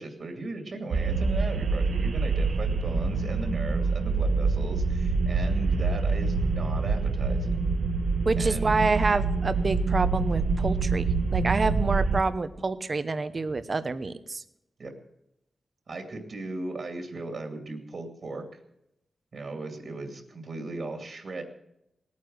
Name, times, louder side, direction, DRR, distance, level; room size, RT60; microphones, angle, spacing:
voice 1, 0.0-7.7 8.3-8.8 14.8-14.9 15.9-18.5 19.3-21.4, right 2 dB, 55° right, 4 dB, 2.4 m, -37 dB
sound 1, 0.9-12.2, right 4 dB, 75° right, 0.9 m, -26 dB
voice 2, 8.2-11.0 11.3-14.4, right 3 dB, 40° right, 11 dB, 0.9 m, -27 dB
18.5 x 9.6 x 6.3 m, 0.81 s
wide cardioid pair, 115°, 0 cm